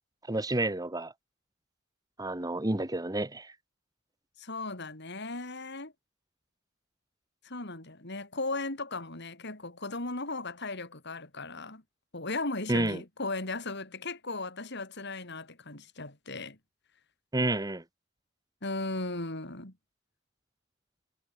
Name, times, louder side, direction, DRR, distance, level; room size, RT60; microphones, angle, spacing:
voice 1, 0.3-1.1 2.2-3.5 12.7-13.0 17.3-17.8, right 1 dB, 20° right, 1.5 m, -30 dB
voice 2, 4.4-5.9 7.4-11.8 12.1-16.6 18.6-19.7, left 2 dB, 60° left, 6.4 m, -37 dB
head